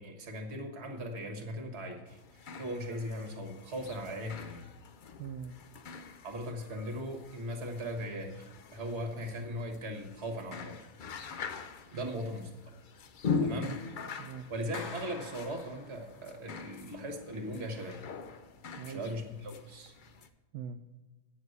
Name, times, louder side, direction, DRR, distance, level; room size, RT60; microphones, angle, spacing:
voice 1, 0.0-4.7 6.2-10.8 11.9-12.5 13.4-13.8 14.5-18.0 18.9-19.9, equal, 45° right, 4 dB, 1.7 m, -39 dB
sound 1, 2.1-20.3, left 5 dB, 85° left, 0.4 m, -42 dB
voice 2, 5.2-5.6 11.9-12.2 13.5-14.5 18.8-19.0 20.5-20.8, right 7 dB, 75° right, 5 dB, 1.1 m, -43 dB
Clapping, 14.7-16.4, left 4 dB, 50° left, 1.2 m, -46 dB
9.5 x 6.5 x 8.1 m, 1.2 s
omnidirectional pair, 1.7 m